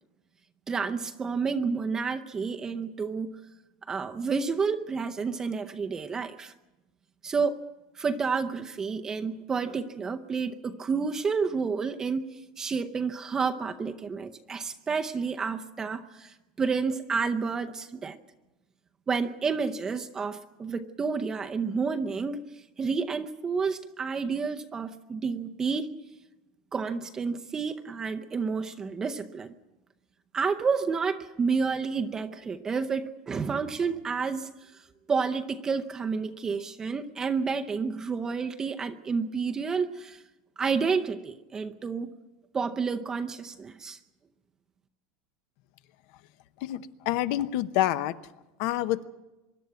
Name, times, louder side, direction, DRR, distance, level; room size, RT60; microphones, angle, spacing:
voice 1, 0.7-3.3 3.9-6.5 7.2-7.6 8.0-18.2 19.1-22.4 22.8-25.9 26.7-29.5 30.3-34.7 35.1-40.2 40.6-42.1 42.5-44.0, right 5 dB, 15° right, 6 dB, 0.7 m, -30 dB
voice 2, 46.6-48.1 48.6-49.0, left 13 dB, 50° left, 14 dB, 0.8 m, -27 dB
24.5 x 11.5 x 9.4 m, 1.1 s
supercardioid pair, 175°, 4 cm